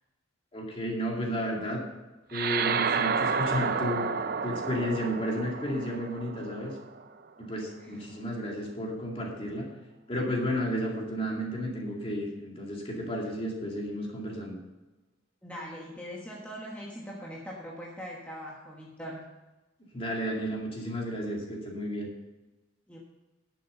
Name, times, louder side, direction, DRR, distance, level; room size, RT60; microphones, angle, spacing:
voice 1, 0.5-1.8 2.3-4.1 4.4-6.7 7.4-9.7 10.1-14.6 19.9-22.1, equal, 30° left, -1 dB, 2.3 m, -32 dB
sound 1, 2.3-7.1, right 5 dB, 50° right, 0.6 m, -30 dB
voice 2, 15.4-19.3 22.9-23.0, equal, 10° left, -4 dB, 1.3 m, -41 dB
11.0 x 7.1 x 6.7 m, 1.1 s
head